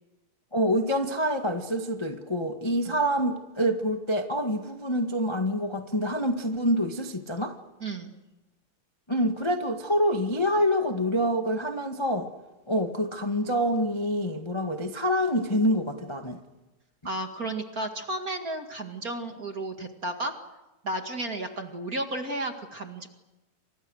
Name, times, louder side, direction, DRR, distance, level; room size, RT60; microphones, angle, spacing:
voice 1, 0.5-7.5 9.1-12.3 12.7-16.4, equal, 20° left, 4 dB, 0.8 m, -26 dB
voice 2, 7.8-8.2 17.0-20.4 20.8-23.1, right 1 dB, 30° right, 5 dB, 2.0 m, -33 dB
29.5 x 26.5 x 6.5 m, 1.1 s
omnidirectional pair, 4.0 m